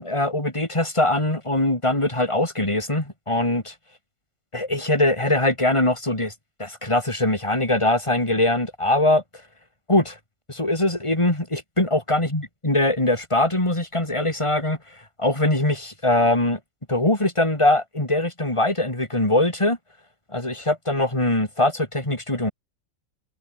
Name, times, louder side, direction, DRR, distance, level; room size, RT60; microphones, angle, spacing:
voice 1, 0.0-3.6 4.5-6.3 6.6-9.2 9.9-10.2 10.5-14.8 15.2-16.6 16.9-19.8 20.3-22.5, left 1 dB, 15° left, 4.3 m, -22 dB
omnidirectional pair, 1.9 m